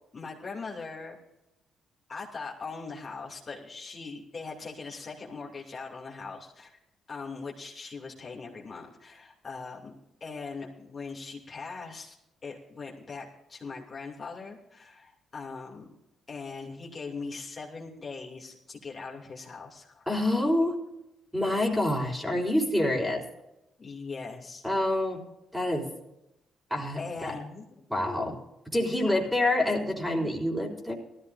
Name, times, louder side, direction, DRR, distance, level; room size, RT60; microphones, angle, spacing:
voice 1, 0.1-1.2 2.1-6.8 7.1-9.9 10.2-12.2 12.4-15.9 16.3-20.0 23.8-24.7 27.0-28.2 29.1-29.2, left 4 dB, 35° left, -3 dB, 2.7 m, -40 dB
voice 2, 20.1-20.8 21.3-23.2 24.6-25.2 25.5-25.9 26.7-27.4 27.9-28.3 28.7-30.9, left 1 dB, 5° right, 0 dB, 3.7 m, -27 dB
18.5 x 14.0 x 2.6 m, 0.90 s
cardioid pair, 90°, 0 cm